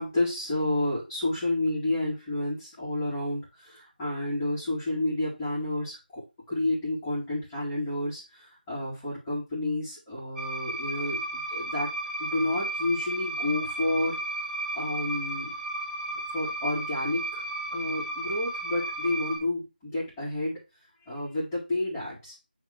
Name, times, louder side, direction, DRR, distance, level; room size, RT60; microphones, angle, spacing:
voice 1, 0.0-11.9 12.2-14.2 14.7-15.6 16.3-17.4 17.7-20.6 21.0-22.4, left 2 dB, 10° left, -11 dB, 2.4 m, -30 dB
sound 1, 10.4-19.4, right 2 dB, 5° right, 1.0 m, -34 dB
8.4 x 3.6 x 5.9 m, 0.26 s
figure-of-eight pair, 170°, 5 cm